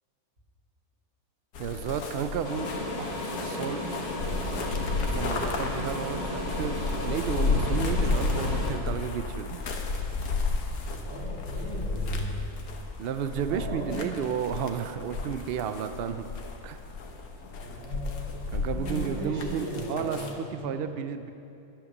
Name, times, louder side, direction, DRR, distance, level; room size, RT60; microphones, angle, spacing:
sound 1, 1.5-20.3, left 3 dB, 75° left, 1.6 m, -32 dB
voice 1, 1.6-3.8 5.1-9.9 13.0-16.3 16.6-16.8 18.5-21.3, right 7 dB, 70° right, 9 dB, 0.5 m, -33 dB
sound 2, 2.4-8.7, left 1 dB, 25° left, 1.8 m, -34 dB
voice 2, 10.9-12.4 13.5-14.1 17.6-20.8, right 1 dB, 50° right, -8 dB, 4.0 m, -37 dB
11.0 x 10.0 x 6.5 m, 2.7 s
omnidirectional pair, 1.6 m